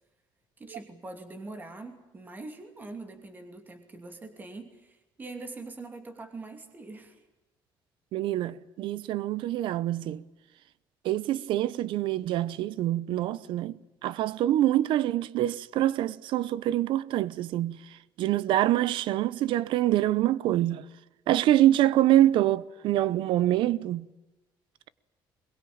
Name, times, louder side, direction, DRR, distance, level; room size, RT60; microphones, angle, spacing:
voice 1, 0.6-7.2, right 3 dB, 20° right, 2.7 m, -43 dB
voice 2, 8.1-10.2 11.0-17.8 18.2-20.9 21.3-24.1, right 13 dB, 70° right, 0.8 m, -25 dB
22.0 x 22.0 x 8.7 m
cardioid pair, 160°, 9 cm